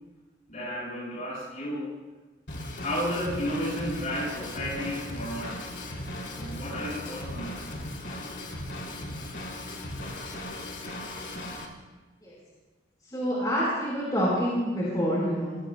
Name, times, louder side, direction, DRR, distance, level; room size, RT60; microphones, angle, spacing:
voice 1, 0.5-1.9 2.8-5.6 6.3-7.7, equal, 40° left, -5 dB, 7.0 m, -33 dB
Drum kit / Drum, 2.5-11.7, left 1 dB, 70° left, 3.2 m, -37 dB
voice 2, 13.1-15.6, equal, 20° left, -7 dB, 5.1 m, -27 dB
27.0 x 21.5 x 2.3 m, 1.3 s
head